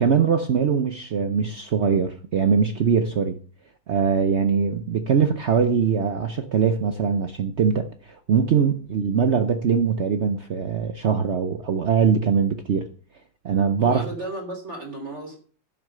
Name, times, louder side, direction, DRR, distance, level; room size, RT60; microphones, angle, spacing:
voice 1, 0.0-3.4 3.9-12.9 13.4-14.1, right 6 dB, 80° right, 0.6 m, -22 dB
voice 2, 13.8-15.4, right 1 dB, 35° right, 3.7 m, -33 dB
11.0 x 6.2 x 6.7 m
omnidirectional pair, 2.2 m